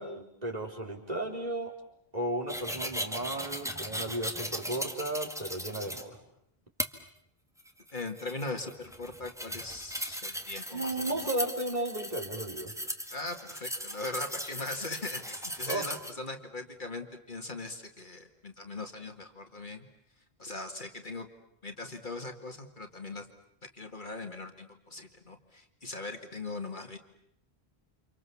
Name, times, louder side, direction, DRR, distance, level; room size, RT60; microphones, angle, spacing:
voice 1, 0.0-1.7 2.1-6.2 10.7-12.7 15.7-15.9, right 1 dB, 40° right, 0 dB, 4.4 m, -34 dB
sound 1, 2.5-6.0 6.8-6.9 7.6-16.1, equal, 5° right, 1.8 m, -38 dB
voice 2, 7.9-11.3 13.1-19.9 20.4-21.3 21.6-23.3 23.7-27.0, left 2 dB, 50° left, 5 dB, 2.2 m, -40 dB
30.0 x 26.5 x 7.1 m, 0.74 s
omnidirectional pair, 1.1 m